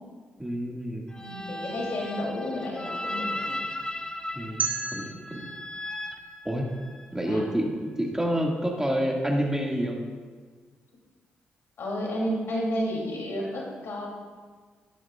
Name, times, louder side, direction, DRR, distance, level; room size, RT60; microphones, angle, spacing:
voice 1, 0.4-1.1 4.3-5.5 6.4-6.7 7.1-10.0, equal, 10° right, 0 dB, 2.0 m, -28 dB
sound 1, 1.1-7.1, left 1 dB, 20° left, 0.9 m, -36 dB
voice 2, 1.2-3.7 7.2-7.4 11.8-14.1, equal, 65° left, -2 dB, 2.9 m, -31 dB
sound 2, 4.6-7.5, right 5 dB, 35° right, 1.8 m, -36 dB
12.5 x 10.5 x 2.4 m, 1.5 s
hypercardioid pair, 40°, 5 cm